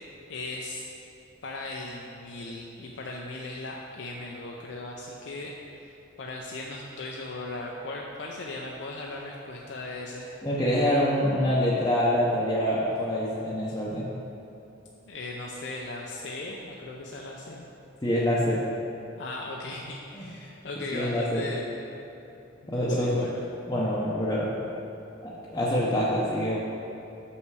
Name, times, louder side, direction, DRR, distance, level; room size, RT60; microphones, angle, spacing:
voice 1, 0.3-0.8 1.4-10.3 15.1-17.7 19.2-21.7 22.6-23.4, left 2 dB, 65° left, -1 dB, 0.5 m, -38 dB
voice 2, 10.4-14.1 18.0-18.7 20.1-20.2 20.9-21.5 22.7-23.2 23.7-24.6 25.2-26.6, equal, 20° left, -7 dB, 0.7 m, -26 dB
6.5 x 5.6 x 4.7 m, 2.9 s
head